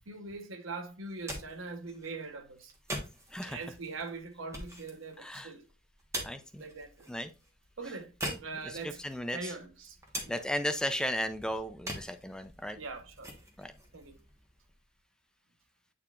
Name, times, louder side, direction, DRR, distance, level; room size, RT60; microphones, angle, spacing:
voice 1, 0.0-2.7 3.4-5.6 6.6-7.1 7.8-8.1 8.4-9.0 9.3-10.0 10.2-10.5 12.8-13.4 13.9-14.2, right 3 dB, 90° right, 1.1 m, -42 dB
sound 1, 1.0-14.9, right 1 dB, 15° right, 1.3 m, -45 dB
voice 2, 3.3-3.7 5.2-5.5 6.2-6.6 7.1-7.3 7.8-9.6 10.3-12.8 13.6-13.7, equal, 5° left, 0.4 m, -36 dB
8.6 x 4.5 x 2.4 m
head